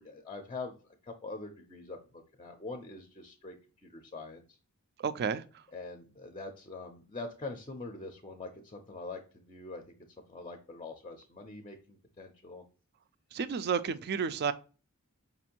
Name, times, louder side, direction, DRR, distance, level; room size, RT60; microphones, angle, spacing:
voice 1, 0.0-3.6 3.8-4.4 5.7-9.9 10.3-12.6, left 3 dB, 20° left, 0.5 m, -44 dB
voice 2, 5.0-5.6 13.3-14.5, right 6 dB, 45° right, 0.4 m, -31 dB
5.1 x 2.5 x 2.8 m
head